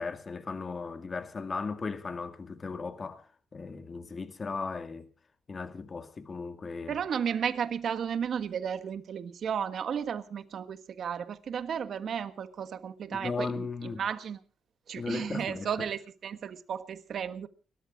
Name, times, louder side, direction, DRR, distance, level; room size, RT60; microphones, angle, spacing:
voice 1, 0.0-5.1 5.5-7.0 13.1-14.0 15.0-15.7, left 4 dB, 35° left, 2.0 m, -37 dB
voice 2, 6.9-14.4 14.9-17.5, right 7 dB, 60° right, 1.4 m, -34 dB
30.0 x 13.5 x 2.5 m
cardioid pair, 90°, 0 cm